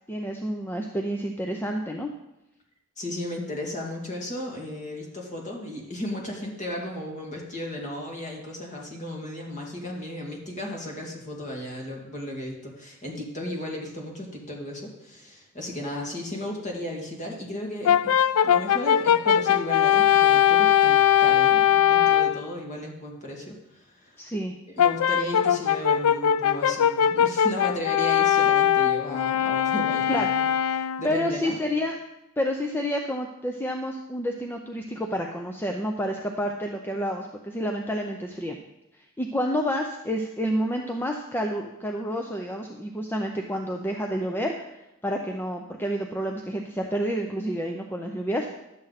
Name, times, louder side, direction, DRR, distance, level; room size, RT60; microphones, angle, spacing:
voice 1, 0.1-2.1 24.2-24.5 30.1-30.3 31.0-32.0 32.4-38.6 39.2-44.7 45.0-48.5, equal, 10° left, 3 dB, 0.6 m, -29 dB
voice 2, 3.0-24.2 24.7-30.5 31.0-31.6, left 1 dB, 35° left, -1 dB, 2.2 m, -35 dB
Brass instrument, 17.8-22.4 24.8-31.1, left 10 dB, 85° left, 0.4 m, -21 dB
11.5 x 7.7 x 4.1 m, 0.89 s
head